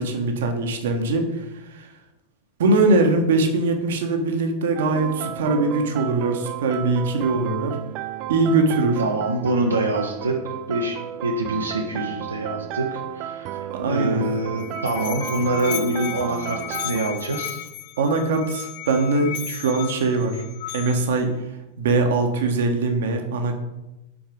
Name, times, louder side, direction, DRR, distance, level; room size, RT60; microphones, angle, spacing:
voice 1, 0.0-1.9 2.6-7.8 8.3-9.0 13.7-14.2 18.0-20.4 20.7-21.3 21.8-23.5, right 3 dB, 60° right, 5 dB, 1.0 m, -22 dB
sound 1, 4.8-17.0, right 11 dB, 40° right, 0.3 m, -33 dB
voice 2, 9.0-10.4 10.7-13.5 13.9-17.6, right 2 dB, 80° right, 0 dB, 0.7 m, -25 dB
Musical instrument, 14.3-21.2, left 12 dB, 50° left, 0.5 m, -35 dB
6.1 x 4.5 x 5.1 m, 0.98 s
figure-of-eight pair, 90°, 0 cm